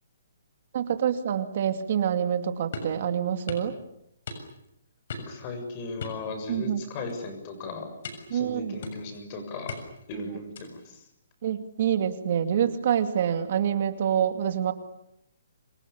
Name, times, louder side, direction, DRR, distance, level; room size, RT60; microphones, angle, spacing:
voice 1, 0.7-3.8 6.5-6.8 8.3-8.8 11.4-14.7, right 9 dB, 45° right, 8 dB, 2.4 m, -26 dB
sound 1, 2.7-3.0 3.5-3.7 4.3-4.7 5.1-5.4 6.0-6.8 7.1-7.3 8.0-8.4 8.8-9.2 9.7-10.1 10.5-10.9, left 3 dB, 50° left, 6.9 m, -39 dB
voice 2, 5.3-7.9 8.3-9.8 10.1-11.1, left 3 dB, 25° left, 7 dB, 7.0 m, -37 dB
29.5 x 26.5 x 7.1 m, 0.78 s
hypercardioid pair, 165°, 0 cm